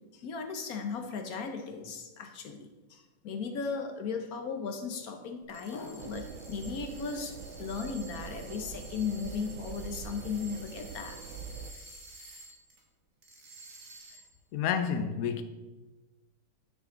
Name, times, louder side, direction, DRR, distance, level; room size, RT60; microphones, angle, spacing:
voice 1, 0.1-11.2, left 5 dB, 55° left, 1.2 m, -36 dB
sound 1, 5.4-12.8 13.2-14.4, right 2 dB, 45° right, 1.6 m, -51 dB
sound 2, 6.0-11.7, right 6 dB, 75° right, 1.3 m, -44 dB
voice 2, 14.5-15.4, left 7 dB, 85° left, 0.7 m, -29 dB
10.0 x 6.3 x 3.9 m
omnidirectional pair, 2.2 m